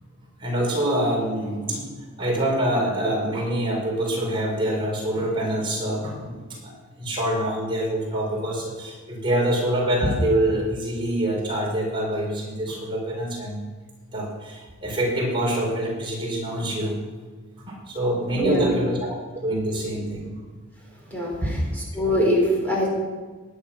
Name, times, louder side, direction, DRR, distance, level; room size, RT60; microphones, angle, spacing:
voice 1, 0.4-1.9 2.2-13.6 14.1-17.0 17.7-19.1 19.4-20.3 21.4-21.6, right 1 dB, 25° right, -3 dB, 4.6 m, -25 dB
voice 2, 18.3-18.8 21.1-21.3 21.9-22.9, equal, 10° left, -3 dB, 4.6 m, -22 dB
19.0 x 11.0 x 5.9 m, 1.4 s
head